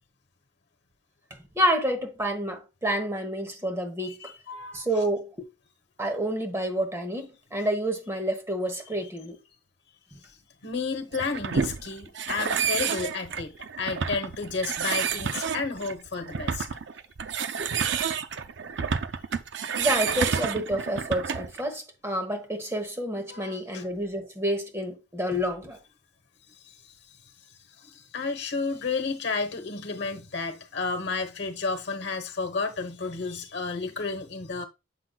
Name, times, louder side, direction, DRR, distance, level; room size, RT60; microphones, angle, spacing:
voice 1, 1.3-4.3 4.7-5.5 6.0-9.4 19.8-25.8, equal, 15° right, 1.1 m, -29 dB
voice 2, 4.0-5.0 10.2-10.4 10.6-16.7 23.3-23.8 26.6-26.9 27.8-34.6, left 4 dB, 60° left, 1.1 m, -32 dB
sound 1, 11.1-21.6, right 6 dB, 65° right, 0.5 m, -29 dB
7.6 x 5.7 x 2.3 m
head